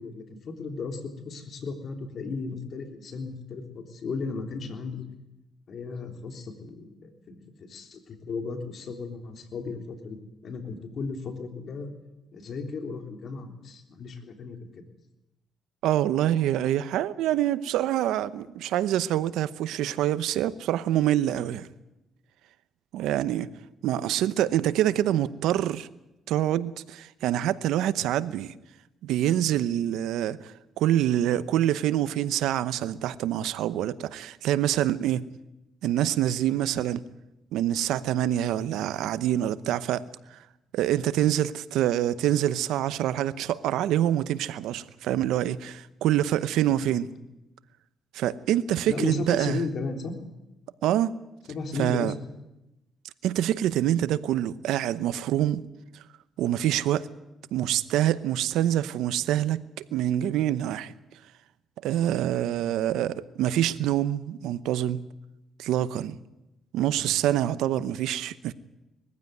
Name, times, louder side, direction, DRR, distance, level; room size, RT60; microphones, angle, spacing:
voice 1, 0.0-5.0 5.7-10.2 10.4-11.9 12.3-14.7 23.4-23.6 46.7-47.0 48.9-50.1 51.5-52.2 66.9-67.1, left 4 dB, 60° left, 3.6 m, -35 dB
voice 2, 15.8-21.7 22.9-23.5 23.8-25.9 26.3-28.5 29.0-35.3 35.8-37.0 37.5-40.1 40.3-40.4 40.7-47.1 48.1-49.6 50.8-51.1 51.8-52.1 53.2-55.6 56.4-57.1 57.5-59.6 59.9-60.9 61.8-65.0 65.6-66.2 66.7-68.5, right 12 dB, 90° right, 0.8 m, -26 dB
20.5 x 15.0 x 9.3 m
cardioid pair, 90°, 0 cm